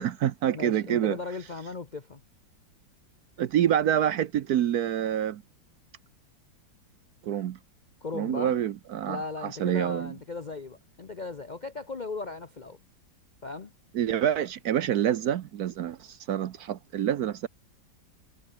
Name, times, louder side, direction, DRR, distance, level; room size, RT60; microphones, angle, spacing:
voice 1, 0.0-1.2 3.4-5.4 7.2-7.6 8.1-10.1 13.9-17.5, right 10 dB, 65° right, 1.1 m, -27 dB
voice 2, 0.5-2.2 8.0-8.6 9.1-12.8 13.4-13.7, left 3 dB, 45° left, 0.6 m, -37 dB
omnidirectional pair, 2.1 m